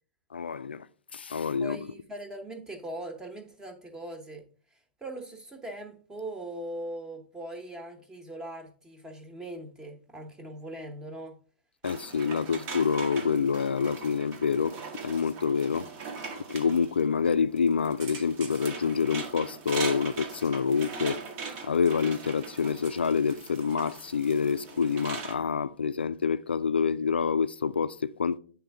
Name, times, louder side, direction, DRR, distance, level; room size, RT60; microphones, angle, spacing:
voice 1, 0.3-1.9 11.8-14.8 15.0-15.9 16.5-21.2 21.6-28.4, left 6 dB, 85° left, 0.3 m, -27 dB
voice 2, 1.6-4.4 4.7-11.4 12.3-12.6, right 1 dB, 10° right, 1.0 m, -41 dB
sound 1, 11.8-25.3, right 5 dB, 40° right, 0.9 m, -40 dB
8.5 x 3.5 x 3.4 m
hypercardioid pair, 115°, 6 cm